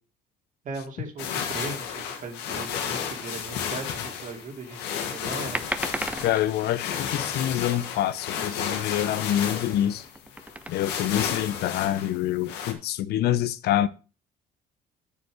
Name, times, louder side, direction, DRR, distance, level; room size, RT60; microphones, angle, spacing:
voice 1, 0.6-5.6, right 3 dB, 50° right, 2.5 m, -38 dB
sound 1, 1.2-12.7, left 8 dB, 90° left, 1.9 m, -33 dB
sound 2, 5.5-6.5 9.8-10.8, right 1 dB, 10° right, 0.9 m, -32 dB
voice 2, 6.2-10.1 10.7-13.9, left 12 dB, 70° left, 0.8 m, -26 dB
7.1 x 6.9 x 6.2 m
cardioid pair, 110°, 17 cm